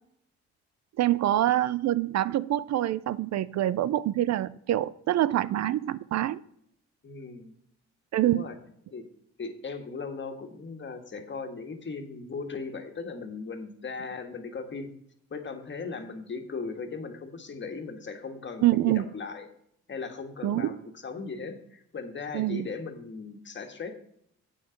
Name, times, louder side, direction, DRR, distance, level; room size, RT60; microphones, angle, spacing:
voice 1, 1.0-6.4 8.1-8.4 18.6-19.0 20.4-20.8 22.3-22.7, right 13 dB, 60° right, 17 dB, 0.5 m, -25 dB
voice 2, 7.0-7.5 8.2-8.6 8.9-9.1 9.4-14.9 15.3-19.5 19.9-20.7 21.0-23.9, left 4 dB, 40° left, 5 dB, 1.7 m, -38 dB
8.7 x 7.4 x 5.2 m, 0.69 s
cardioid pair, 90°, 30 cm